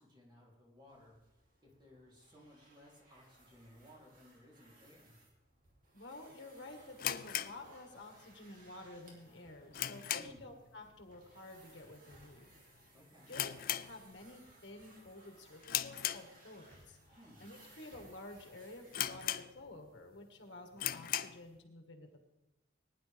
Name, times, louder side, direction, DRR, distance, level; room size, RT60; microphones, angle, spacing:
voice 1, 0.0-5.2 10.1-10.4 12.9-13.4 17.2-17.4, left 1 dB, 25° right, -4 dB, 3.3 m, -60 dB
sound 1, 0.9-19.6, right 1 dB, 45° right, 2.9 m, -63 dB
voice 2, 5.9-12.5 13.3-17.0 17.4-22.3, left 2 dB, 70° left, 3 dB, 1.7 m, -51 dB
sound 2, 7.0-8.3 8.6-8.7 9.2-10.6 10.9-11.2 11.4-11.5 12.2-12.5 12.8-12.9 13.3-14.5 14.8-15.1 15.6-16.8 17.3-17.4 18.0-18.1 18.4-18.5 18.9-19.9 20.3-20.4 20.7-21.5, left 12 dB, 50° left, 0.4 m, -38 dB
19.0 x 10.5 x 3.5 m, 0.97 s
head